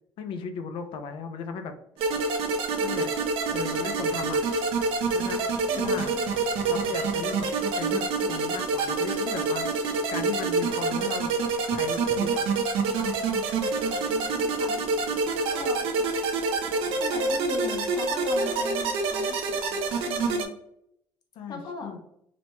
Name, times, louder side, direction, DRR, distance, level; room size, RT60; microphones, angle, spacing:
voice 1, 0.2-1.8 2.8-3.1 3.5-4.4 5.1-5.5 5.8-6.1 6.7-7.5 7.8-11.3 11.7-12.6 21.4-22.0, left 5 dB, 70° left, 7 dB, 0.4 m, -36 dB
sound 1, 2.0-20.5, right 3 dB, 80° right, 0.4 m, -27 dB
voice 2, 5.7-6.4 14.0-14.9 15.5-16.3 16.7-20.5 21.5-22.0, left 4 dB, 45° left, 1 dB, 0.8 m, -39 dB
2.9 x 2.1 x 2.9 m, 0.74 s
cardioid pair, 110°, 9 cm